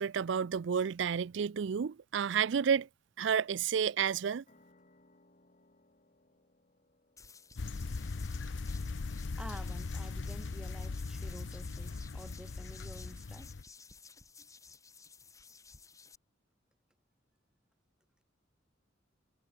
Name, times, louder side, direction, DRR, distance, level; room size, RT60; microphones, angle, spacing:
voice 1, 0.0-2.9 3.2-4.4, right 7 dB, 65° right, 0.4 m, -31 dB
sound 1, 4.5-11.7, left 2 dB, 40° left, 3.4 m, -70 dB
sound 2, 7.2-16.2, left 5 dB, 15° left, 1.9 m, -55 dB
sound 3, 7.6-13.6, left 3 dB, 65° left, 0.6 m, -39 dB
voice 2, 9.4-13.5, equal, 5° right, 1.3 m, -50 dB
head